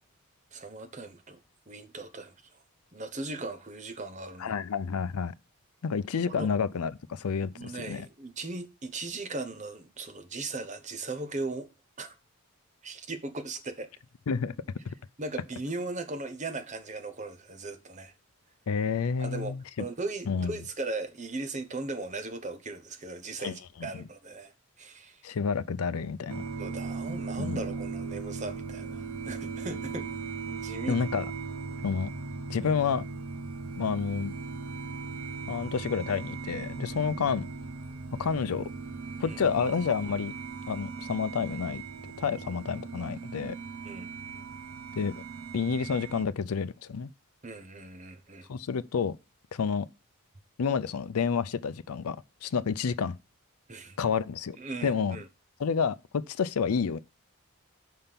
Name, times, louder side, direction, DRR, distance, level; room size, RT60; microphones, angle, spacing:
voice 1, 0.5-1.4 1.7-2.3 2.9-4.5 6.2-6.5 7.5-11.7 12.0-12.1 12.8-13.9 15.2-18.1 19.2-19.5 19.8-25.2 26.6-30.2 30.5-31.0 39.3-39.4 43.8-44.1 47.4-48.5 53.7-54.0 54.6-55.3, right 3 dB, 35° right, 0.9 m, -38 dB
voice 2, 4.4-5.3 5.8-8.1 14.3-14.5 14.9-15.0 18.7-19.8 20.3-20.6 23.4-24.0 25.2-26.4 27.4-27.7 30.9-31.3 31.8-32.1 32.5-33.1 33.8-34.3 35.5-37.5 38.2-38.7 39.2-40.3 40.7-41.8 42.2-43.6 45.0-45.2 45.5-47.1 48.5-49.2 49.5-49.9 50.6-53.2 54.0-54.6 54.8-55.2 55.6-57.0, left 6 dB, 85° left, 0.5 m, -29 dB
sound 1, 26.3-46.3, right 4 dB, 75° right, 0.7 m, -38 dB
5.6 x 5.3 x 5.7 m
head